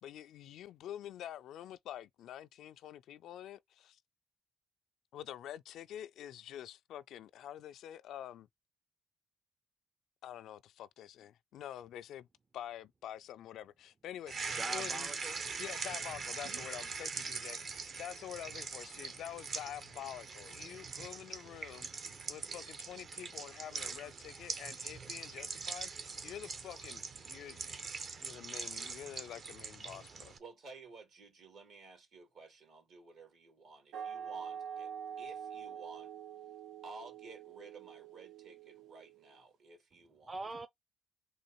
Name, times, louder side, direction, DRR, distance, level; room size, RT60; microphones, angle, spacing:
voice 1, 0.0-4.0 5.1-8.5 10.2-12.3 12.5-15.1 15.6-27.6 28.2-30.3, left 11 dB, 80° left, 0.3 m, -47 dB
sound 1, 14.3-30.4, right 5 dB, 55° right, 1.0 m, -42 dB
voice 2, 14.6-15.4 40.2-40.7, right 2 dB, 25° right, 0.5 m, -42 dB
voice 3, 30.4-34.9 35.2-36.1 36.8-40.3, right 3 dB, 70° right, 2.4 m, -54 dB
sound 2, 33.9-39.4, right 8 dB, 85° right, 0.6 m, -46 dB
3.9 x 2.9 x 4.2 m
cardioid pair, 90°, 0 cm